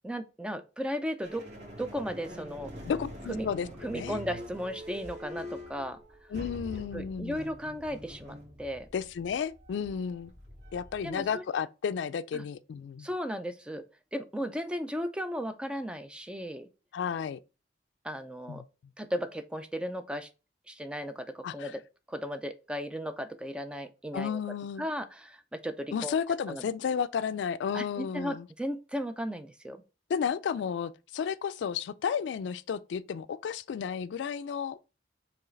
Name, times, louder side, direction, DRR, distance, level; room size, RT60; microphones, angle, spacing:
voice 1, 0.0-1.4 1.8-2.7 3.3-3.5 3.8-6.0 6.9-8.9 11.0-11.4 12.3-12.4 13.0-13.8 14.1-16.7 18.0-18.6 19.0-20.3 20.7-21.8 22.1-24.4 24.8-26.2 26.5-26.6 27.7-29.8, equal, 5° right, 0.3 m, -35 dB
sound 1, 1.2-11.3, equal, 70° right, 2.0 m, -45 dB
voice 2, 2.8-3.7 3.9-4.2 6.3-7.4 8.9-10.3 10.7-13.1 16.9-17.4 18.5-18.6 21.4-21.7 24.1-24.8 25.9-28.5 30.1-34.8, left 7 dB, 80° left, 0.3 m, -32 dB
4.6 x 3.3 x 3.1 m
head